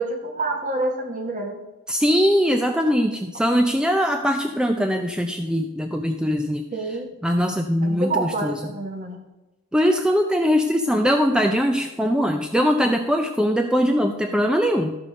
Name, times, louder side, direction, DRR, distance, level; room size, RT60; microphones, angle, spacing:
voice 1, 0.0-1.6 6.7-7.1 7.8-9.3, right 2 dB, 40° right, 3 dB, 1.7 m, -27 dB
voice 2, 1.9-6.6 7.2-8.7 9.7-14.9, equal, 5° right, 5 dB, 0.5 m, -21 dB
13.0 x 5.1 x 6.4 m, 1.0 s
head